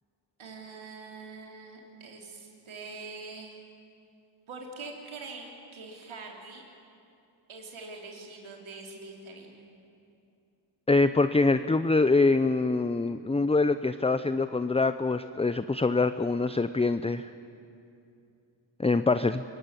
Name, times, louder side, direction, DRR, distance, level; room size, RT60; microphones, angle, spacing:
voice 1, 0.4-3.6 4.5-6.6 7.5-9.6, right 3 dB, 80° right, 0 dB, 4.1 m, -44 dB
voice 2, 10.9-17.3 18.8-19.4, left 3 dB, 15° left, 12 dB, 0.6 m, -24 dB
26.5 x 16.5 x 9.8 m, 2.6 s
cardioid pair, 60°, 47 cm